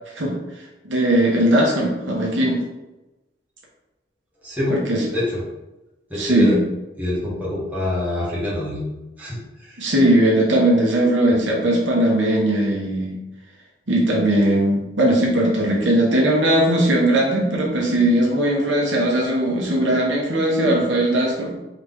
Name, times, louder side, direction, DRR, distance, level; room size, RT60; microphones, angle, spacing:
voice 1, 0.8-2.6 4.9-5.0 6.2-6.6 9.8-13.1 13.9-21.6, right 1 dB, 80° right, -2 dB, 1.1 m, -19 dB
voice 2, 4.4-4.7 5.1-5.4 6.1-6.6 7.0-9.8, left 1 dB, 10° right, -8 dB, 1.4 m, -26 dB
3.9 x 3.3 x 3.6 m, 1.0 s
head